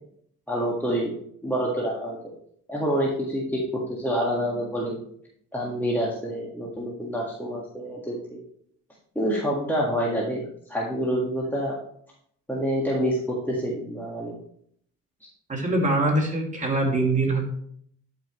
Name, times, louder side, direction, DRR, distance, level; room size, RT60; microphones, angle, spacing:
voice 1, 0.5-1.2 1.4-2.2 2.7-5.0 5.5-8.4 9.2-11.8 12.5-14.4, equal, 5° left, -4 dB, 1.8 m, -27 dB
voice 2, 15.5-17.5, right 2 dB, 25° right, -1 dB, 2.5 m, -23 dB
11.5 x 5.6 x 3.1 m, 0.66 s
cardioid pair, 90°, 30 cm